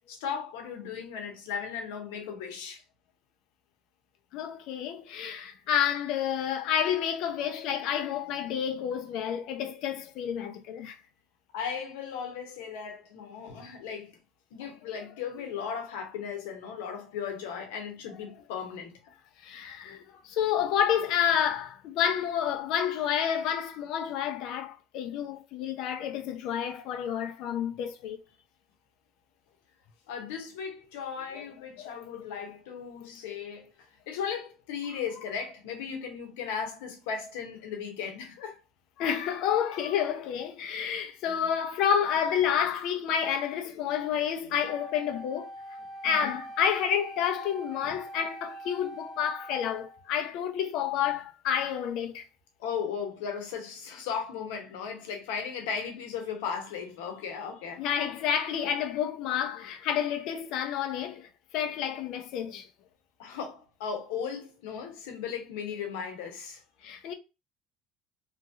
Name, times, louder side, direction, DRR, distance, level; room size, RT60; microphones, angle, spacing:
voice 1, 0.1-2.8 11.5-14.1 14.5-19.0 30.1-38.6 46.0-46.4 52.6-57.8 63.2-66.6, left 7 dB, 85° left, 1.0 m, -36 dB
voice 2, 4.3-11.0 19.4-28.2 31.3-31.4 39.0-45.5 46.0-52.2 57.8-62.7 66.8-67.1, left 9 dB, 65° left, 0.6 m, -29 dB
Wind instrument woodwind instrument, 44.7-50.1, right 1 dB, 35° left, 1.1 m, -44 dB
2.9 x 2.5 x 2.7 m
supercardioid pair, 100°, 0 cm